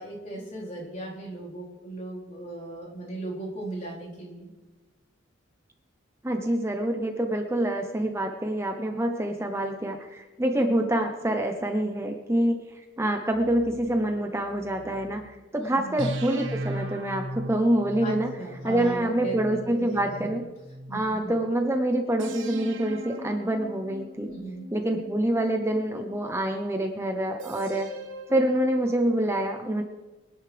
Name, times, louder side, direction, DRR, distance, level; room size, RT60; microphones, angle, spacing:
voice 1, 0.0-4.5 15.6-16.0 18.0-20.3 20.9-21.4 24.2-24.7, right 1 dB, 40° left, -5 dB, 4.2 m, -37 dB
voice 2, 6.2-15.2 15.5-18.3 18.6-20.5 20.9-24.3 24.7-27.9 28.3-29.8, right 1 dB, 15° right, 4 dB, 0.8 m, -26 dB
sound 1, 13.3-15.3 16.0-21.2 22.2-26.4 27.4-29.0, equal, 70° right, 1.4 m, -39 dB
24.0 x 10.5 x 3.4 m, 1.2 s
head